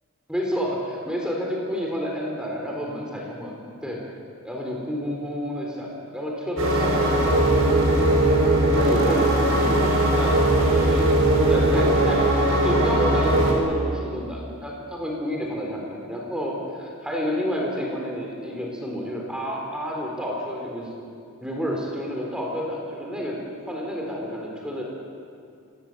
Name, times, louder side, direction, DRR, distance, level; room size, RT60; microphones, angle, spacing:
voice 1, 0.3-4.0 4.4-8.5 8.8-20.9 21.4-23.4 23.7-24.8, equal, 5° right, -2 dB, 4.1 m, -30 dB
sound 1, 6.6-13.5, right 1 dB, 90° right, 7.9 m, -19 dB
27.0 x 19.5 x 8.2 m, 2.4 s
head